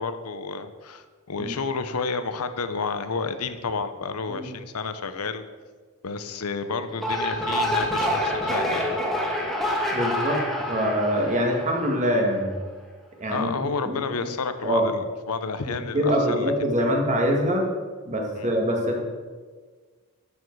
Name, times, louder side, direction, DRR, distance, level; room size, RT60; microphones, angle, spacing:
voice 1, 0.0-5.4 6.0-8.9 13.3-16.5 18.4-18.5, left 4 dB, 85° left, 10 dB, 0.8 m, -30 dB
sound 1, 6.9-12.2, equal, ahead, 1.5 m, -27 dB
voice 2, 9.9-10.4 10.7-12.6 13.2-14.3 14.6-14.9 15.7-17.7 18.0-19.0, equal, 35° right, 1 dB, 1.8 m, -24 dB
12.5 x 7.3 x 4.7 m, 1.5 s
head